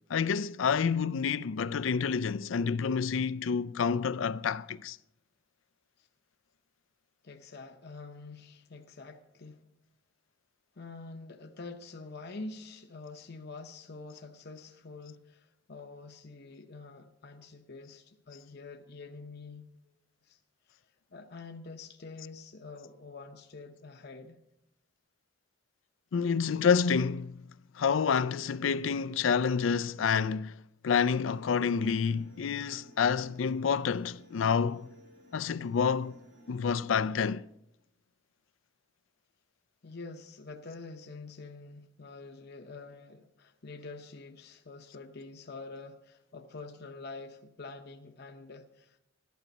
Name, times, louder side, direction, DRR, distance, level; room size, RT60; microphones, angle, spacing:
voice 1, 0.1-5.0 26.1-27.4 27.8-30.6 30.8-34.9 35.3-36.2 36.5-37.4, left 6 dB, 90° left, 0.4 m, -28 dB
voice 2, 7.2-9.6 10.8-19.9 20.2-20.4 20.7-20.8 21.1-24.4 39.8-49.0, left 3 dB, 60° left, 0.8 m, -46 dB
sound 1, 30.9-37.1, equal, 65° right, 5.3 m, -57 dB
14.5 x 11.5 x 5.3 m
head